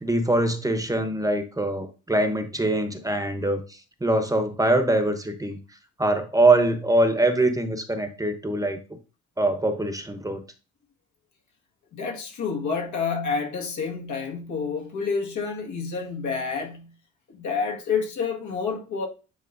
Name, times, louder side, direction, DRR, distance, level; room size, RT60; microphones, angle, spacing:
voice 1, 0.0-5.6 6.0-8.8 9.4-10.4, right 2 dB, 10° right, 0.9 m, -23 dB
voice 2, 11.9-16.9 17.3-19.1, left 5 dB, 75° left, 1.8 m, -29 dB
9.5 x 4.4 x 2.6 m
cardioid pair, 90°, 30 cm